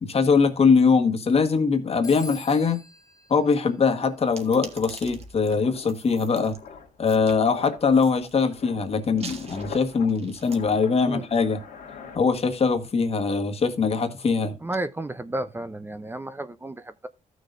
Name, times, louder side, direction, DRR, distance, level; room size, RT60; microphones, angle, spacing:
voice 1, 0.0-2.8 3.3-6.5 7.0-11.6 12.1-14.5, left 5 dB, 45° left, 1.5 m, -22 dB
Telephone, 2.0-4.5, left 3 dB, 25° left, 1.8 m, -45 dB
sound 1, 3.8-12.8 13.1-13.4, left 6 dB, 90° left, 2.1 m, -45 dB
sound 2, 4.3-6.6 7.1-7.4 7.9-8.5 9.1-10.6, right 4 dB, 45° right, 1.7 m, -43 dB
voice 2, 14.6-17.1, right 2 dB, 15° right, 0.6 m, -32 dB
15.0 x 6.4 x 2.6 m
cardioid pair, 95°, 14 cm